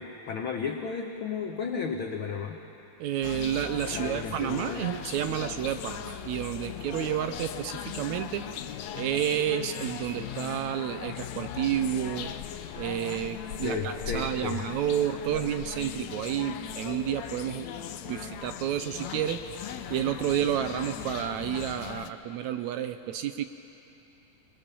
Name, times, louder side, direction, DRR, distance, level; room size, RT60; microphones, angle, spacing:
voice 1, 0.0-2.6 3.9-5.0 13.6-14.6, left 5 dB, 90° left, 3 dB, 1.1 m, -33 dB
voice 2, 3.0-8.4 8.9-12.3 12.8-13.8 14.1-17.7 18.0-23.5, right 10 dB, 75° right, 9 dB, 1.7 m, -30 dB
sound 1, 3.2-22.1, left 10 dB, 75° left, 1.7 m, -38 dB
26.0 x 21.5 x 6.9 m, 3.0 s
omnidirectional pair, 3.7 m